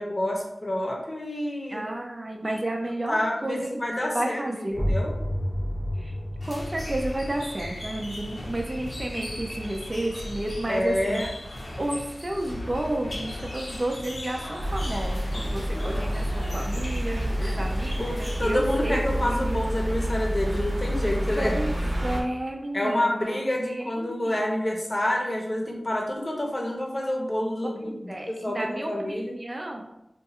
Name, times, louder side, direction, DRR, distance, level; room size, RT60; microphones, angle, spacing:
voice 1, 0.0-1.8 2.4-2.6 3.1-5.1 10.7-11.3 17.4-17.6 18.0-21.5 22.7-28.0 28.3-29.3, left 1 dB, 40° left, -1 dB, 0.8 m, -28 dB
voice 2, 1.7-4.8 6.0-6.2 6.4-11.2 11.8-19.6 21.4-23.4 23.7-24.3 27.8-29.9, right 1 dB, 35° right, 1 dB, 0.5 m, -32 dB
sound 1, 4.7-10.2, equal, 10° left, 1.0 m, -32 dB
sound 2, 6.4-18.9, left 1 dB, 75° left, 0.7 m, -37 dB
sound 3, 14.6-22.2, equal, 50° right, 0.8 m, -28 dB
2.6 x 2.4 x 4.1 m, 0.85 s
wide cardioid pair, 75°, 0 cm